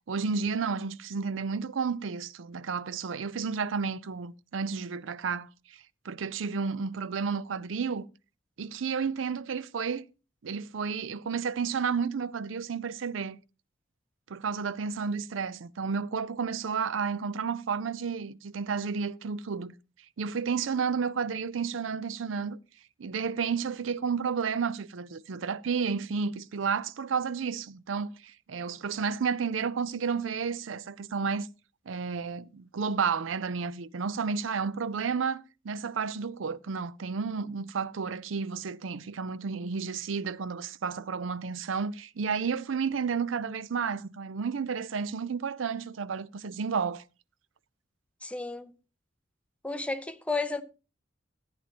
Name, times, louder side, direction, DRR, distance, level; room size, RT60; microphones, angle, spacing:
voice 1, 0.1-8.0 8.6-10.0 10.4-13.4 14.3-19.7 20.2-22.6 23.0-31.5 31.9-47.0, right 5 dB, 75° right, 0.5 m, -31 dB
voice 2, 48.2-48.7 49.6-50.6, left 3 dB, 5° left, 0.7 m, -32 dB
14.0 x 9.0 x 2.9 m
head